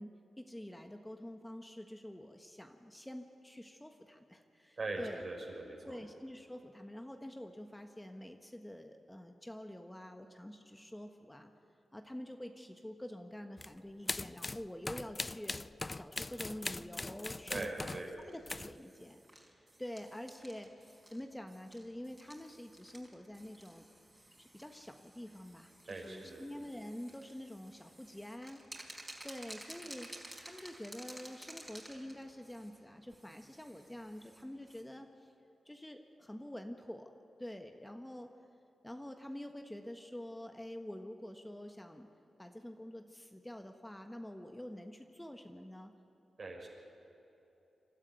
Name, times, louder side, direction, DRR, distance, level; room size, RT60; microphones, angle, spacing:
voice 1, 0.0-5.2 5.8-11.5 11.9-17.9 18.3-23.9 24.4-28.7 29.2-30.1 30.4-35.3 35.6-37.1 37.4-38.3 38.8-42.1 42.4-45.9, left 1 dB, 10° left, 5 dB, 1.4 m, -47 dB
voice 2, 4.8-6.0 17.5-18.1 25.9-26.4 46.4-46.7, right 2 dB, 55° right, 0 dB, 5.6 m, -41 dB
sound 1, 13.6-13.7 14.1-18.1 18.5-18.8, left 2 dB, 30° left, 0.4 m, -40 dB
sound 2, 17.3-34.8, right 1 dB, 20° right, 4.7 m, -55 dB
25.0 x 12.5 x 9.4 m, 2.9 s
cardioid pair, 45°, 0 cm